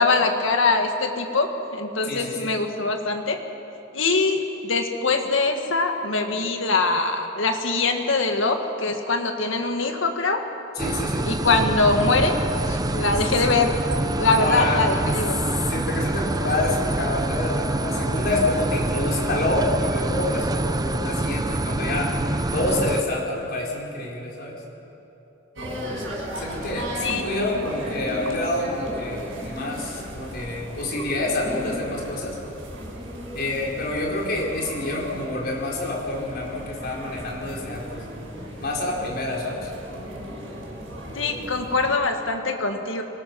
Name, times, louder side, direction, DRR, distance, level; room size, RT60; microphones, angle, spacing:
voice 1, 0.0-3.4 3.9-10.4 11.2-12.4 12.7-13.7 14.2-15.4 27.0-27.2 41.2-43.0, left 3 dB, 75° left, 4 dB, 1.9 m, -23 dB
voice 2, 2.0-2.5 10.7-11.3 13.4-13.5 14.2-14.8 15.7-22.2 22.5-24.6 26.4-32.4 33.3-38.0 38.6-39.7, left 2 dB, 55° left, -3 dB, 4.3 m, -27 dB
sound 1, 10.8-23.0, right 2 dB, 20° right, 0.6 m, -26 dB
sound 2, 25.6-41.9, equal, 75° right, 6.1 m, -35 dB
25.0 x 20.0 x 6.0 m, 2.9 s
head